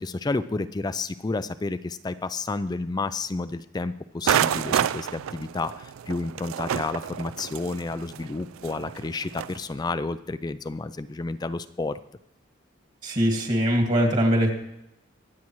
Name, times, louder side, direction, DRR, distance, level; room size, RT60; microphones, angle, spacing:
voice 1, 0.0-12.0, left 3 dB, 20° left, 13 dB, 0.3 m, -31 dB
sound 1, 4.3-9.6, right 9 dB, 90° right, 0.3 m, -28 dB
voice 2, 13.0-14.5, equal, 40° right, 1 dB, 2.0 m, -22 dB
24.0 x 8.6 x 3.1 m, 0.85 s
head